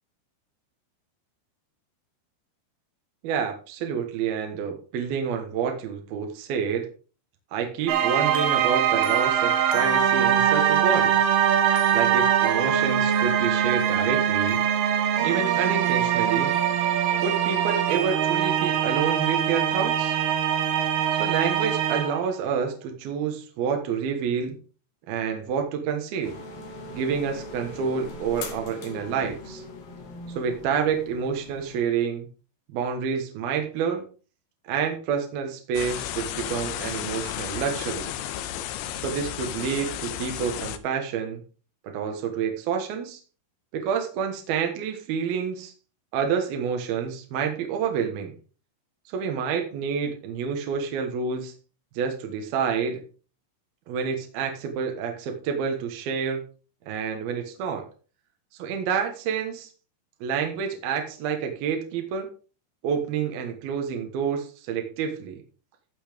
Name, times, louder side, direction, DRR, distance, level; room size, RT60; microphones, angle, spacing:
voice 1, 3.2-6.9 7.5-11.1 11.9-14.6 15.2-16.5 17.2-20.2 21.2-24.6 25.1-26.4 26.9-29.6 30.3-32.3 32.7-34.0 34.6-38.1 38.9-41.4 41.9-43.2 43.7-45.7 46.1-48.3 49.1-51.5 51.9-53.0 53.9-56.4 56.9-57.8 58.6-59.7 60.2-62.3 62.8-65.4, right 7 dB, 65° right, 4 dB, 2.7 m, -28 dB
sound 1, 7.9-22.3, right 9 dB, 85° right, 4.0 m, -23 dB
sound 2, 26.2-31.8, left 2 dB, 60° left, 4.1 m, -40 dB
sound 3, 35.7-40.8, left 11 dB, 80° left, 3.2 m, -33 dB
14.5 x 5.7 x 5.1 m, 0.37 s
omnidirectional pair, 5.6 m